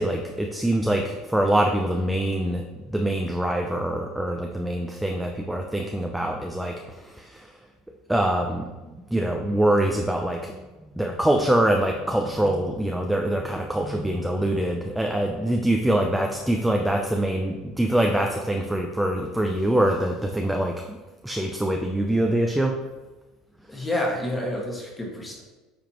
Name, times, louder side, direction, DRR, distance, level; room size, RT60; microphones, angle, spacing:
voice 1, 0.0-2.6 2.9-6.8 7.2-7.4 8.1-10.5 11.0-21.0 21.2-22.7, right 1 dB, 5° right, 2 dB, 0.5 m, -24 dB
voice 2, 23.7-25.4, left 1 dB, 10° left, -1 dB, 1.7 m, -28 dB
9.2 x 5.1 x 3.0 m, 1.1 s
cardioid pair, 140°, 0 cm